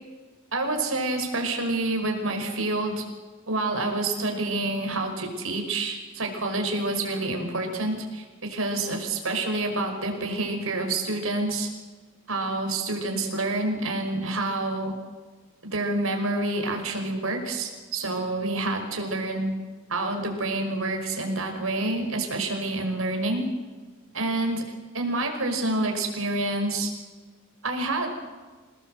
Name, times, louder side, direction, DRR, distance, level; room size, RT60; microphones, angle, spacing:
voice 1, 0.5-3.1 3.5-11.7 12.3-14.9 15.7-19.5 19.9-23.5 24.1-26.9 27.6-28.1, right 2 dB, 70° right, 4 dB, 5.4 m, -28 dB
27.5 x 19.0 x 7.9 m, 1.4 s
head